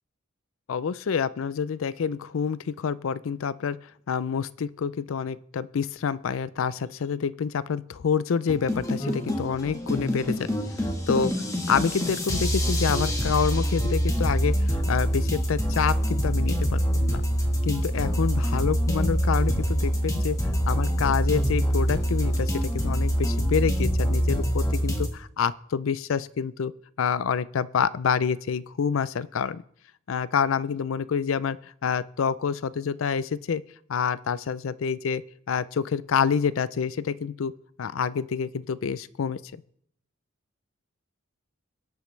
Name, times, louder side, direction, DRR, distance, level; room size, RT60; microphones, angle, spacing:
voice 1, 0.7-3.8 4.1-10.5 11.1-11.3 11.7-17.2 17.6-20.4 20.7-26.7 27.0-29.6 30.1-33.6 33.9-35.2 35.5-37.5 37.8-39.4, left 6 dB, 75° left, 18 dB, 0.4 m, -27 dB
sound 1, 8.5-25.1, equal, 15° left, 1.4 m, -25 dB
21.5 x 8.3 x 3.2 m, 0.66 s
head